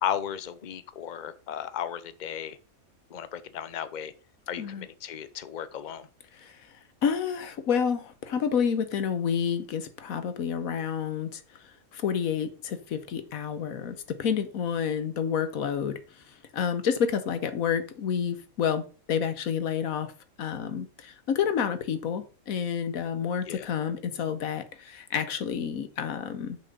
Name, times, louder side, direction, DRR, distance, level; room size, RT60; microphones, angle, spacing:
voice 1, 0.0-2.6 3.1-4.1 4.5-6.1 23.4-23.7, left 9 dB, 45° left, 0.7 m, -35 dB
voice 2, 7.0-11.4 11.9-16.0 16.5-20.1 20.4-26.6, left 7 dB, 80° left, 1.4 m, -29 dB
6.9 x 5.9 x 5.3 m
omnidirectional pair, 1.5 m